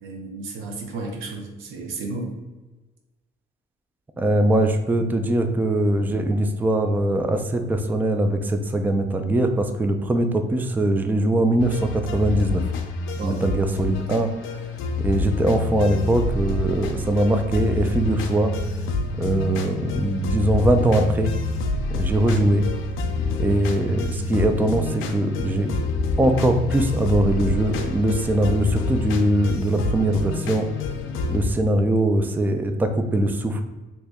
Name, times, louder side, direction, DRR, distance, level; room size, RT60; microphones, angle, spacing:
voice 1, 0.0-2.3 13.2-13.4, right 3 dB, 90° right, 2 dB, 0.7 m, -33 dB
voice 2, 4.2-12.7 13.2-14.3 15.0-18.5 19.1-21.3 21.9-22.7 23.4-25.7 26.2-30.7 31.3-33.6, right 1 dB, 10° right, 7 dB, 0.3 m, -21 dB
sound 1, 11.6-31.5, left 3 dB, 90° left, 0.4 m, -27 dB
3.0 x 2.7 x 3.4 m, 1.2 s
cardioid pair, 90°, 20 cm